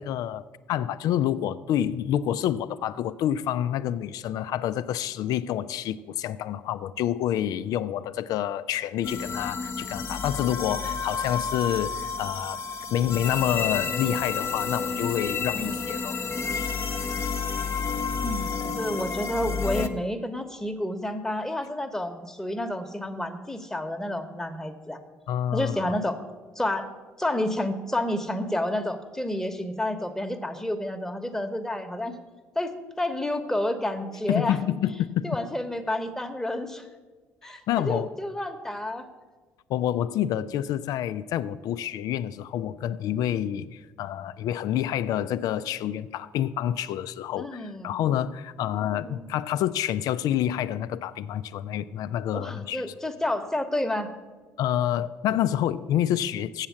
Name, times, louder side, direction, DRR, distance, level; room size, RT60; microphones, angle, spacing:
voice 1, 0.0-12.6 12.9-16.2 25.3-26.0 34.3-35.4 37.7-38.1 39.7-52.9 54.6-56.7, left 11 dB, 65° left, 14 dB, 0.4 m, -28 dB
sound 1, 9.0-19.9, left 5 dB, 35° left, 0.8 m, -30 dB
voice 2, 15.5-15.9 18.2-25.0 25.5-26.2 26.5-26.9 27.2-32.2 32.5-32.7 33.0-34.6 35.2-36.9 37.4-39.0 47.4-47.9 48.6-49.3 52.3-54.1, left 1 dB, 5° left, 6 dB, 1.1 m, -30 dB
7.4 x 7.3 x 7.2 m, 1.3 s
hypercardioid pair, 55°, 7 cm